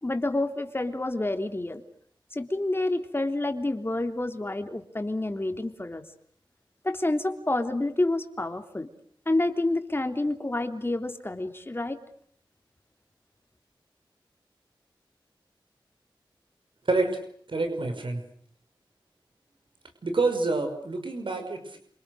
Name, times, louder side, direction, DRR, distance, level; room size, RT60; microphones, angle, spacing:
voice 1, 0.0-1.8 2.3-6.0 6.8-8.9 9.3-12.0, left 2 dB, 25° left, 6 dB, 3.4 m, -28 dB
voice 2, 16.9-17.2 17.5-18.2 20.0-21.8, right 3 dB, 75° right, 6 dB, 5.6 m, -27 dB
30.0 x 27.5 x 6.6 m, 0.64 s
wide cardioid pair, 80°, 9 cm